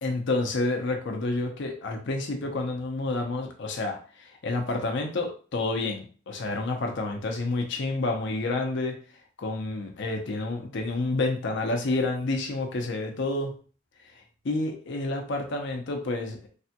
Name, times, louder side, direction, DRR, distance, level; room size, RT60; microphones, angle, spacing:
voice 1, 0.0-8.9 9.4-13.5 14.4-16.5, left 2 dB, 60° left, 3 dB, 0.5 m, -29 dB
3.3 x 2.2 x 2.8 m, 0.41 s
head